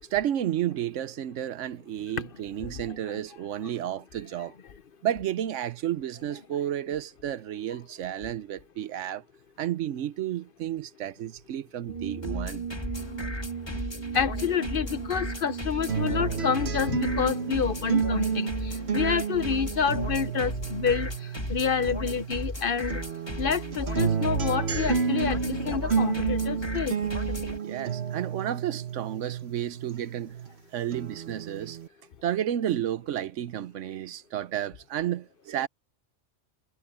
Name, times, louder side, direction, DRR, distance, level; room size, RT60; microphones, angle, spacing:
voice 1, 0.1-4.5 5.0-9.2 9.6-12.7 27.6-30.3 30.7-31.8 32.2-35.7, right 11 dB, 75° right, 1.0 m, -31 dB
sound 1, 11.9-19.4, right 6 dB, 30° right, 2.2 m, -39 dB
sound 2, 12.2-27.6, left 1 dB, 20° left, 1.6 m, -36 dB
voice 2, 14.1-21.1 21.5-23.0 23.4-27.0, left 6 dB, 50° left, 0.9 m, -28 dB
sound 3, 15.9-22.5 22.9-30.5 30.9-31.9, right 6 dB, 55° right, 1.5 m, -31 dB
omnidirectional pair, 1.3 m